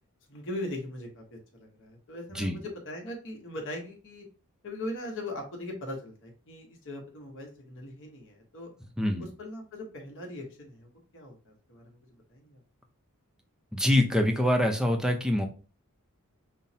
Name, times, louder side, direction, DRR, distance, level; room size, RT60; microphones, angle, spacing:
voice 1, 0.3-4.3 4.6-8.7 9.2-12.6, left 1 dB, 60° left, 1 dB, 1.0 m, -40 dB
voice 2, 9.0-9.3 13.7-15.5, left 1 dB, 5° right, 4 dB, 0.5 m, -25 dB
5.4 x 2.0 x 2.7 m, 0.35 s
head